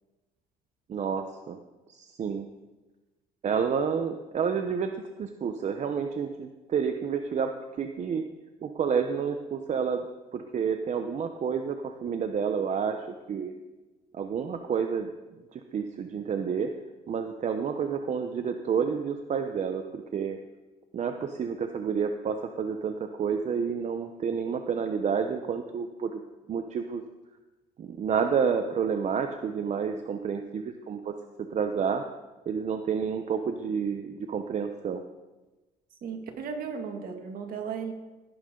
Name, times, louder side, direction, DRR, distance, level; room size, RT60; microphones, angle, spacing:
voice 1, 0.9-1.6 1.9-2.5 3.4-8.2 8.6-10.0 10.3-13.0 13.3-13.5 14.1-15.1 15.5-16.7 17.1-20.4 20.9-26.2 26.5-27.0 27.8-31.1 31.5-32.0 32.5-35.0, right 6 dB, 45° right, 6 dB, 0.9 m, -29 dB
voice 2, 36.0-37.9, right 6 dB, 60° right, 3 dB, 2.3 m, -35 dB
17.0 x 11.5 x 3.9 m, 1.2 s
cardioid pair, 110°, 17 cm